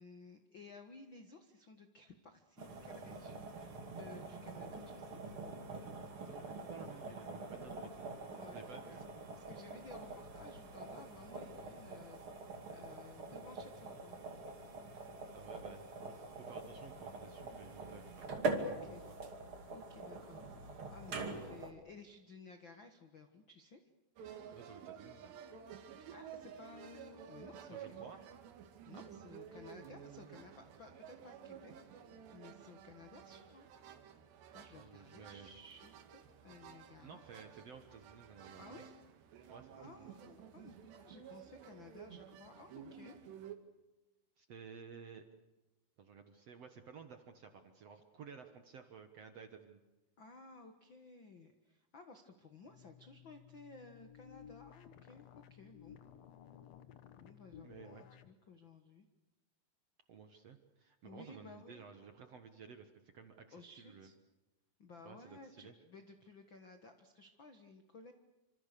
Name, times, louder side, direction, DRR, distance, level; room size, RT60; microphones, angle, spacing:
voice 1, 0.0-5.3 8.4-9.0 9.3-14.2 18.6-19.1 19.7-23.8 26.1-28.1 28.8-33.7 34.5-37.2 38.6-38.9 39.8-43.2 50.2-56.0 57.1-59.0 61.0-61.8 63.5-64.2 64.8-68.1, left 3 dB, 90° left, 7 dB, 1.0 m, -56 dB
sound 1, 2.6-21.7, right 3 dB, 35° right, 2.9 m, -45 dB
voice 2, 6.1-8.1 8.5-9.0 14.9-19.1 24.5-25.3 27.7-28.2 28.9-29.1 34.8-35.5 37.0-38.8 39.5-40.1 44.4-45.2 46.0-49.8 57.6-58.0 60.1-64.1 65.0-65.7, right 6 dB, 60° right, 7 dB, 1.7 m, -54 dB
sound 2, 24.2-43.6, right 8 dB, 85° right, 4.0 m, -53 dB
sound 3, 52.6-58.4, left 9 dB, 75° left, 1.5 m, -57 dB
27.5 x 26.5 x 6.8 m, 1.0 s
omnidirectional pair, 4.8 m